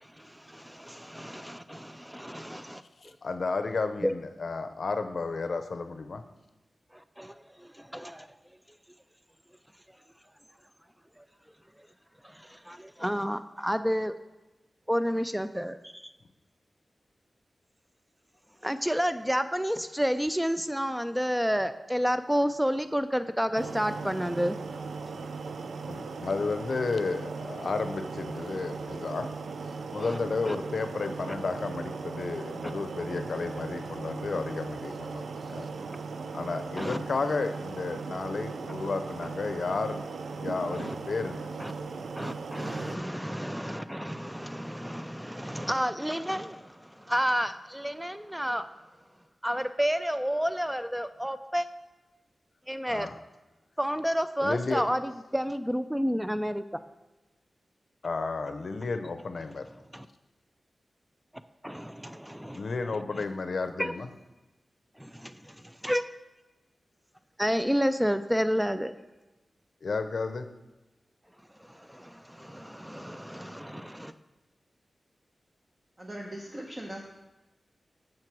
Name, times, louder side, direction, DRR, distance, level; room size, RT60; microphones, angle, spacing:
voice 1, 0.0-2.8 4.0-4.1 6.9-8.3 11.2-11.3 12.2-14.2 14.9-16.1 18.6-24.6 30.0-30.2 30.5-30.6 36.8-37.0 40.7-41.0 41.6-41.7 42.2-48.7 49.4-51.7 52.7-53.1 53.8-56.6 59.9-60.1 61.6-62.6 63.1-63.2 63.8-63.9 65.0-66.1 67.4-68.9 71.6-74.1, equal, 5° right, 11 dB, 0.3 m, -30 dB
voice 2, 3.0-6.2 25.9-29.3 29.9-35.7 36.3-40.0 40.3-41.5 52.9-53.2 54.4-54.8 58.0-59.7 62.5-64.1 69.8-70.5, left 4 dB, 65° left, 8 dB, 0.6 m, -32 dB
sound 1, 23.6-43.0, right 4 dB, 80° right, 0.4 m, -38 dB
voice 3, 76.0-77.0, right 1 dB, 30° right, 0 dB, 0.9 m, -39 dB
7.6 x 4.6 x 6.0 m, 1.1 s
wide cardioid pair, 70°, 0 cm